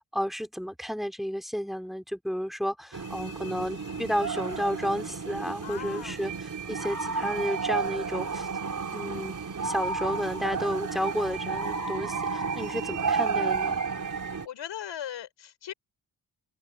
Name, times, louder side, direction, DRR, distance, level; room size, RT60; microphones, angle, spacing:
voice 1, 0.0-8.5 8.9-9.3 9.6-13.8, equal, ahead, 5.5 m, -32 dB
sound 1, 2.9-14.5, right 5 dB, 45° right, 4.8 m, -32 dB
voice 2, 5.6-6.2 14.4-15.7, left 10 dB, 80° left, 5.8 m, -38 dB
supercardioid pair, 45°, 43 cm